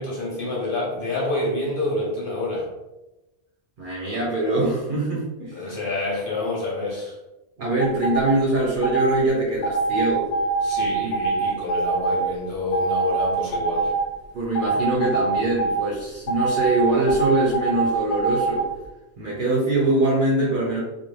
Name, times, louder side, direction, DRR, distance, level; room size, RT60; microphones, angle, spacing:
voice 1, 0.0-2.7 5.5-7.2 10.6-13.9, left 2 dB, 60° left, -4 dB, 0.8 m, -28 dB
voice 2, 3.8-5.7 7.6-10.3 11.0-11.5 14.3-18.7 19.2-20.8, right 2 dB, 60° right, -4 dB, 0.7 m, -23 dB
sound 1, 7.8-8.3 8.8-9.1 9.6-12.2 12.7-14.1 14.6-15.8 16.3-18.6, right 3 dB, 90° left, 0.9 m, -24 dB
2.5 x 2.2 x 3.1 m, 1.0 s
omnidirectional pair, 1.1 m